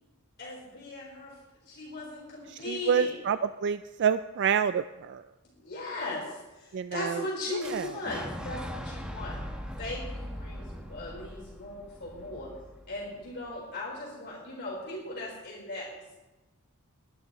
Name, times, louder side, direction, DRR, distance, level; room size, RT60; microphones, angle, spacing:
voice 1, 0.4-1.4 1.7-3.1 5.6-9.4 9.8-12.5 12.9-16.2, left 2 dB, 50° left, -5 dB, 4.2 m, -38 dB
voice 2, 2.5-5.2 6.7-7.3 7.5-7.9, right 7 dB, 50° right, 12 dB, 0.3 m, -28 dB
Boom, 7.6-13.5, equal, 5° right, 1.4 m, -40 dB
23.5 x 12.0 x 3.1 m, 1.1 s
head